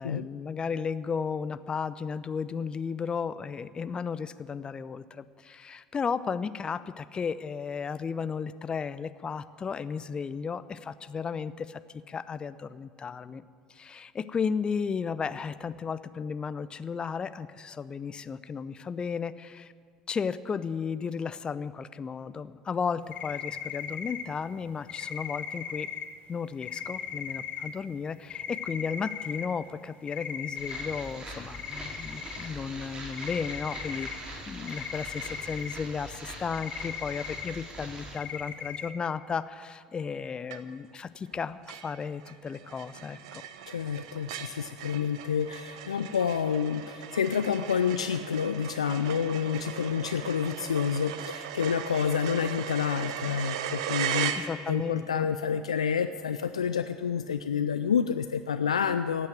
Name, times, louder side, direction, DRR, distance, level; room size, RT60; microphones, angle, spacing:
voice 1, 0.0-13.4 13.7-19.7 20.1-25.9 26.3-43.4 54.3-55.3, left 6 dB, 30° left, 15 dB, 0.7 m, -34 dB
sound 1, 23.1-24.2 24.9-26.0 26.6-27.7 28.3-29.5 30.1-31.0 31.5-32.5 32.8-32.9 33.1-34.1 34.7-35.7 36.5-37.5 38.2-38.9, left 8 dB, 45° left, 1.3 m, -37 dB
sound 2, 30.6-38.2, right 1 dB, 30° right, 3.5 m, -42 dB
sound 3, 40.5-40.9 41.3-41.4 41.7-54.9, right 9 dB, 65° right, 0.8 m, -38 dB
voice 2, 43.7-59.3, left 7 dB, 80° left, 10 dB, 0.4 m, -29 dB
15.5 x 8.6 x 9.0 m, 2.1 s
figure-of-eight pair, 65°, 3 cm